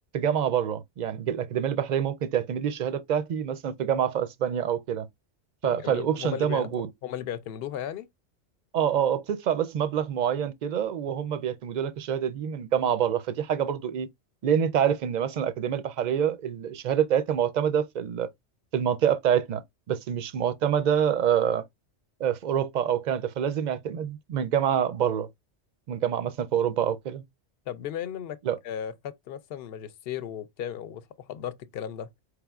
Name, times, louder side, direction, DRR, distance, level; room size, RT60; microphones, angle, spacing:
voice 1, 0.1-5.1 5.6-6.9 8.7-14.1 14.4-18.3 18.7-19.6 19.9-21.6 22.2-25.3 25.9-27.2 28.4-28.6, right 9 dB, 60° right, 0.5 m, -26 dB
voice 2, 5.6-8.1 27.7-28.4 28.6-32.1, left 9 dB, 65° left, 0.7 m, -36 dB
4.9 x 3.4 x 2.3 m
omnidirectional pair, 1.2 m